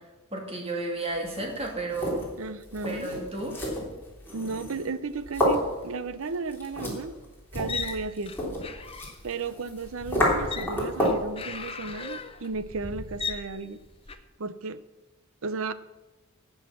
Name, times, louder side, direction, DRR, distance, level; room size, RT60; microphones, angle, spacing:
voice 1, 0.3-2.2 2.8-3.6, right 2 dB, 30° right, 0 dB, 2.6 m, -32 dB
sound 1, 1.1-11.3, equal, 10° left, 3.4 m, -31 dB
voice 2, 2.4-3.1 4.3-7.1 7.5-8.6 9.2-13.8 14.4-14.8 15.4-15.7, right 4 dB, 70° right, 14 dB, 0.7 m, -34 dB
sound 2, 7.5-14.2, left 4 dB, 25° left, 0.7 m, -37 dB
17.5 x 6.5 x 5.9 m, 1.2 s
head